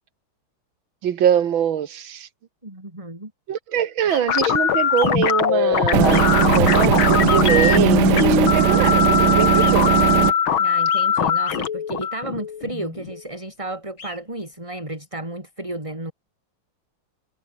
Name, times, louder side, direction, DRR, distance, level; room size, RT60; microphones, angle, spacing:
voice 1, 1.0-2.3 3.5-9.9, right 9 dB, 75° right, 2.2 m, -23 dB
voice 2, 2.6-3.3 10.6-16.1, right 1 dB, 15° right, 4.7 m, -33 dB
sound 1, 4.1-4.2 5.0-5.1 6.1-6.2 7.2-7.4 8.1-8.3 9.6-9.7 10.9-11.0 11.4-11.6 14.0-14.2, left 5 dB, 40° left, 2.1 m, -37 dB
sound 2, 4.3-13.2, left 8 dB, 80° left, 2.6 m, -21 dB
sound 3, 5.9-10.3, right 9 dB, 60° right, 1.7 m, -18 dB
omnidirectional pair, 2.2 m